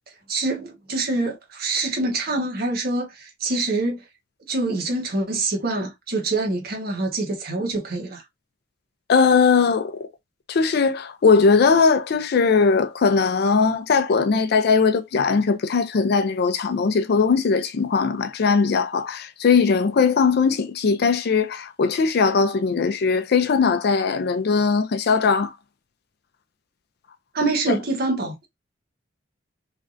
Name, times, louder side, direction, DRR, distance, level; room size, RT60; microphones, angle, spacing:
voice 1, 0.3-4.0 4.5-8.2 27.3-28.5, right 2 dB, 55° right, 0.9 m, -25 dB
voice 2, 9.1-10.1 10.5-25.6 27.7-27.8, left 5 dB, 55° left, 0.4 m, -19 dB
3.2 x 2.6 x 2.4 m
head